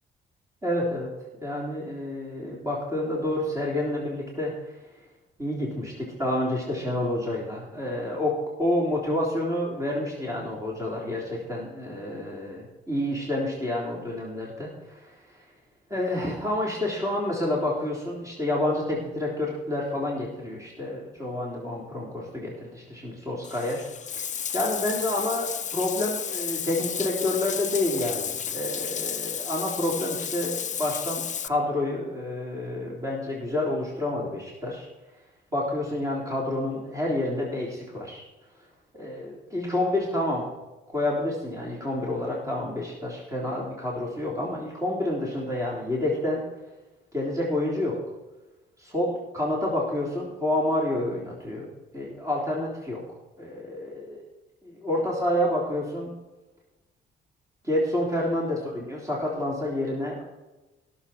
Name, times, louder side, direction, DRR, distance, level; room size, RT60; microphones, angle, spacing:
voice 1, 0.6-1.1 1.4-4.5 5.4-15.2 15.9-23.8 24.5-34.9 35.5-38.2 38.9-40.5 40.9-46.4 47.1-48.0 48.8-51.7 51.9-53.0 53.4-54.2 54.6-56.1 57.6-60.2, left 1 dB, 15° right, -3 dB, 3.5 m, -29 dB
Bathtub (filling or washing), 23.4-31.5, left 8 dB, 40° left, 0.5 m, -32 dB
17.0 x 7.1 x 4.3 m, 1.1 s
cardioid pair, 90°, 20 cm